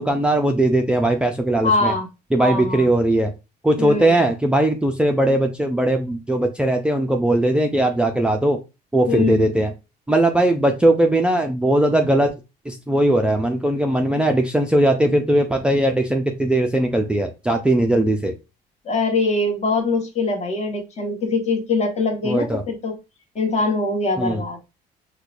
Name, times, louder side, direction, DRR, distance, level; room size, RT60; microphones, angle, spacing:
voice 1, 0.0-1.9 2.3-3.3 3.6-8.6 8.9-9.7 10.1-12.3 12.7-18.3 22.2-22.6 24.2-24.4, right 1 dB, 5° right, 3 dB, 0.4 m, -19 dB
voice 2, 1.6-2.1 2.4-2.9 3.8-4.2 9.1-9.5 17.8-18.2 18.8-23.0 23.3-24.7, left 3 dB, 40° left, 2 dB, 1.2 m, -23 dB
4.5 x 2.2 x 2.5 m, 0.27 s
cardioid pair, 110°, 17 cm